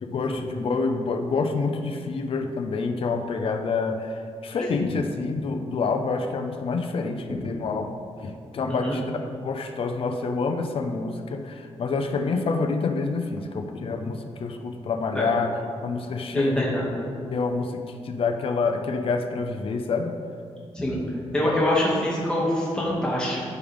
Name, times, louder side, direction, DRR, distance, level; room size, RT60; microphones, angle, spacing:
voice 1, 0.0-7.9 8.2-15.6 15.8-16.8 17.3-20.1, left 4 dB, 55° left, 5 dB, 0.6 m, -27 dB
voice 2, 8.7-9.0 15.1-15.3 16.3-16.8 20.7-21.0 21.3-23.4, left 1 dB, 10° left, -6 dB, 2.0 m, -25 dB
14.0 x 5.2 x 3.5 m, 2.3 s
wide cardioid pair, 160°, 11 cm